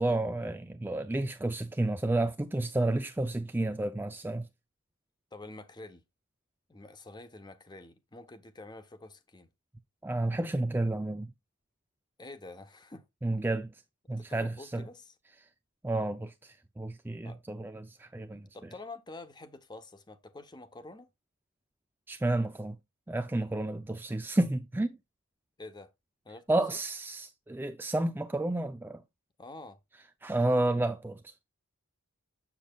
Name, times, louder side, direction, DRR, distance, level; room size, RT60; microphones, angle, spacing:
voice 1, 0.0-4.5 10.0-11.3 13.2-13.7 14.1-14.8 15.8-18.5 22.1-22.8 23.1-25.0 26.5-29.0 30.2-31.3, right 2 dB, 10° right, 0.3 m, -31 dB
voice 2, 5.3-6.0 6.7-9.5 12.2-13.1 14.1-15.1 17.2-17.4 18.5-21.1 25.6-25.9 26.2-26.8 29.4-29.8, left 2 dB, 20° left, 0.7 m, -47 dB
7.5 x 7.1 x 2.3 m
head